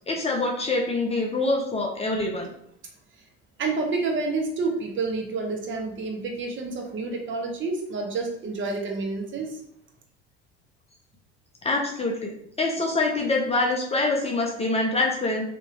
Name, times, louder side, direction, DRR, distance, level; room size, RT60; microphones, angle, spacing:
voice 1, 0.1-2.5 11.6-12.3 12.6-15.4, left 2 dB, 20° left, 0 dB, 0.6 m, -25 dB
voice 2, 3.6-9.6, right 3 dB, 40° right, 2 dB, 0.9 m, -29 dB
2.8 x 2.6 x 2.8 m, 0.73 s
hypercardioid pair, 75°, 31 cm